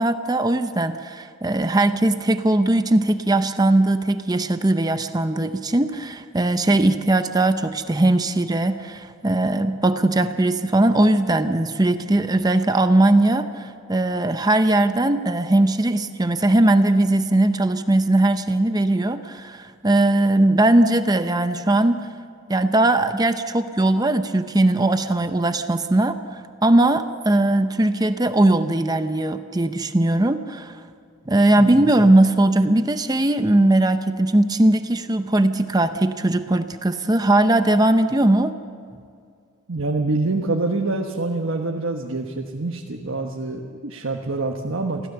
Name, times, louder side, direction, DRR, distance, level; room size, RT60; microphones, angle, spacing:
voice 1, 0.0-22.1 22.5-30.8 31.3-38.5, right 1 dB, 20° right, 9 dB, 0.6 m, -19 dB
voice 2, 39.7-45.1, right 2 dB, 75° right, 1 dB, 1.3 m, -26 dB
25.0 x 16.0 x 6.8 m, 2.3 s
head